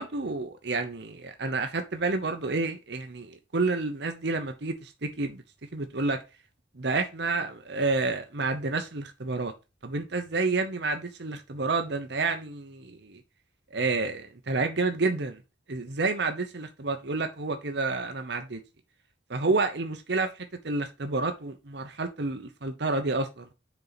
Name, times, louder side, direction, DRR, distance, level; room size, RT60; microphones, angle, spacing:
voice 1, 0.0-5.4 5.7-6.2 6.7-9.5 9.8-13.2 13.7-15.3 15.7-18.6 19.3-23.5, right 3 dB, 65° right, 1.0 m, -29 dB
6.9 x 4.7 x 4.2 m
head